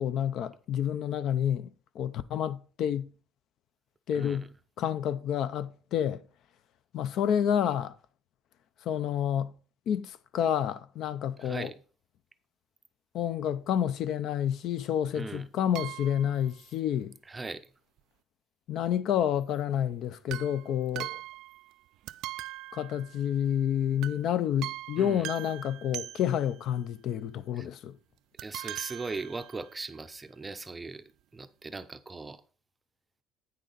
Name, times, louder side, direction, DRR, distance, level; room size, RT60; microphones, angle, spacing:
voice 1, 0.0-1.7 1.9-3.1 4.1-4.5 4.8-6.2 6.9-8.0 8.9-9.5 9.9-11.7 13.1-17.2 18.7-21.2 22.7-28.0, left 9 dB, 55° left, 0.5 m, -29 dB
voice 2, 4.1-4.5 11.4-11.8 15.1-15.5 17.3-17.7 25.0-25.3 27.5-27.7 28.4-31.0 31.3-32.4, right 3 dB, 15° right, 0.5 m, -39 dB
sound 1, 15.7-16.5 20.3-21.8 22.1-23.6 24.0-24.3 24.6-26.6 28.4-29.8 30.6-30.7 30.8-30.9, right 16 dB, 70° right, 0.3 m, -41 dB
9.2 x 6.5 x 3.9 m
cardioid pair, 160°, 0 cm